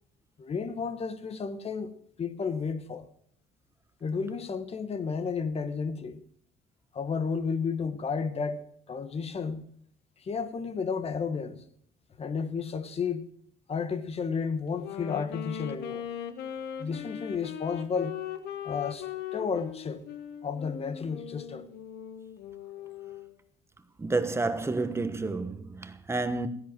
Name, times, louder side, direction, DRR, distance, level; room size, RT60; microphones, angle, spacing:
voice 1, 0.4-1.9 2.2-3.1 4.0-6.2 6.9-9.7 10.2-11.6 12.2-13.3 13.7-16.1 16.8-18.1 18.6-20.0 20.4-21.7, left 5 dB, 35° left, 1.3 m, -32 dB
Wind instrument woodwind instrument, 14.7-23.4, left 9 dB, 75° left, 1.3 m, -39 dB
voice 2, 24.0-26.5, right 3 dB, 15° right, 1.2 m, -30 dB
15.5 x 10.0 x 6.2 m
cardioid pair, 110°, 17 cm